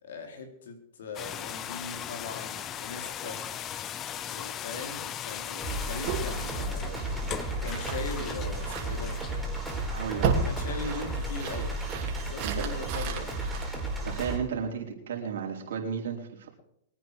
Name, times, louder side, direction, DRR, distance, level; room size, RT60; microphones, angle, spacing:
voice 1, 0.0-3.4 4.3-7.0 7.6-9.2 10.2-11.8 12.1-13.4, left 3 dB, 80° left, 5 dB, 3.5 m, -40 dB
sound 1, 1.1-11.8, left 10 dB, 30° left, 0.7 m, -39 dB
best trance by kris klavenes, 5.6-14.4, right 2 dB, ahead, 5.0 m, -33 dB
sound 2, 6.0-14.5, right 6 dB, 50° right, 3.1 m, -35 dB
voice 2, 9.9-10.3 12.4-12.7 14.0-16.5, right 7 dB, 80° right, 1 dB, 4.0 m, -33 dB
23.0 x 9.2 x 4.8 m, 0.77 s
hypercardioid pair, 135°, 0 cm